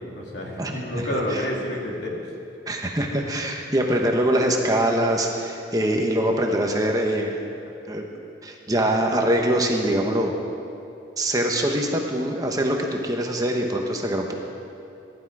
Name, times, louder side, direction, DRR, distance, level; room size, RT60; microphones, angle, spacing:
voice 1, 0.0-2.2, left 1 dB, 70° left, -2 dB, 3.0 m, -29 dB
voice 2, 0.6-1.4 2.7-7.4 7.9-8.0 8.4-10.3 11.2-14.3, right 1 dB, 20° right, 1 dB, 1.2 m, -23 dB
21.5 x 12.0 x 4.9 m, 2.6 s
head